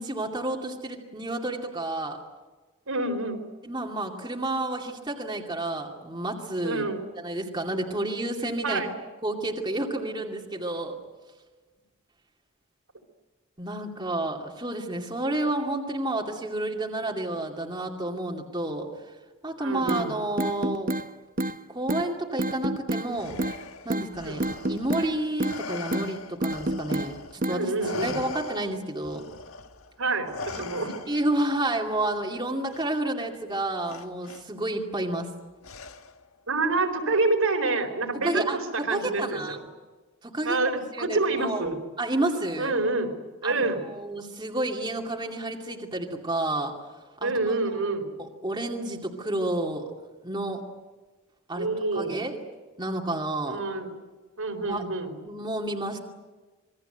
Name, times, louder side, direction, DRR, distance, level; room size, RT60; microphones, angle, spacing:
voice 1, 0.0-2.2 3.6-6.9 7.2-8.8 9.2-11.0 13.6-18.9 19.4-20.9 21.7-23.4 23.8-27.7 28.0-29.2 30.6-30.7 31.1-35.3 38.1-39.6 40.2-40.6 40.9-41.7 42.0-42.8 43.4-46.7 47.2-47.8 48.2-49.9 50.2-50.6 51.5-51.7 51.9-52.3 52.8-53.6 54.7-54.8 55.2-56.0, right 1 dB, 20° right, 0 dB, 2.5 m, -30 dB
voice 2, 2.9-3.4 6.6-7.1 8.6-8.9 19.6-20.1 24.2-24.4 27.5-28.2 30.0-30.9 36.5-39.4 40.4-41.8 42.6-43.1 43.4-43.8 47.2-48.0 51.6-52.1 53.5-53.9 54.4-55.1, right 3 dB, 75° right, 4 dB, 4.4 m, -27 dB
sound 1, 19.9-20.0 20.4-21.0 21.4-21.5 21.9-22.0 22.4-23.1 23.4-23.6 23.9-24.1 24.4-25.1 25.4-25.6 25.9-26.1 26.4-27.1 27.4-27.6, right 1 dB, 40° right, 0.9 m, -27 dB
Respiratory sounds, 23.1-27.4 27.8-31.4 32.7-32.9 33.9-34.4 35.6-36.3, left 4 dB, 75° left, 1.6 m, -40 dB
27.0 x 22.0 x 8.0 m, 1.3 s
head